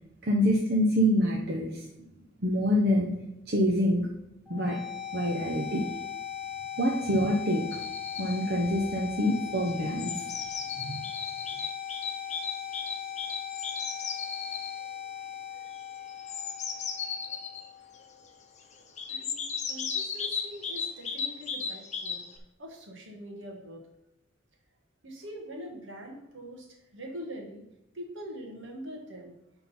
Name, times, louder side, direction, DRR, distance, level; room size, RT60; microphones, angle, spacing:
voice 1, 0.2-1.8 2.4-3.1 3.5-4.1 4.5-4.8 5.1-5.8 6.8-7.6 8.2-10.3 10.8-10.9, equal, 55° right, -1 dB, 0.9 m, -26 dB
sound 1, 4.5-18.4, left 9 dB, ahead, 0.7 m, -39 dB
sound 2, 7.7-8.4 9.5-14.7 16.1-17.6 19.0-22.4, left 5 dB, 35° left, 0.8 m, -35 dB
voice 2, 19.1-19.4 19.7-22.3 22.6-23.9 25.0-27.6 27.9-29.3, equal, 70° right, 1 dB, 1.8 m, -43 dB
9.8 x 3.9 x 4.3 m, 0.89 s
head